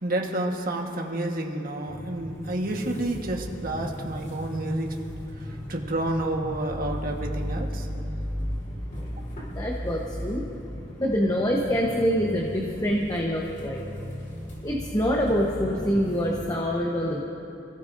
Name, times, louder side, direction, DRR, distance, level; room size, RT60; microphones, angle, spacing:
voice 1, 0.0-4.9 5.3-7.9, right 1 dB, 50° right, 1 dB, 1.5 m, -30 dB
sound 1, 1.9-16.5, equal, 45° left, 4.0 m, -36 dB
voice 2, 9.5-10.5 11.0-13.8 14.6-17.2, equal, 20° left, -1 dB, 1.1 m, -25 dB
28.0 x 16.5 x 2.7 m, 2.9 s
head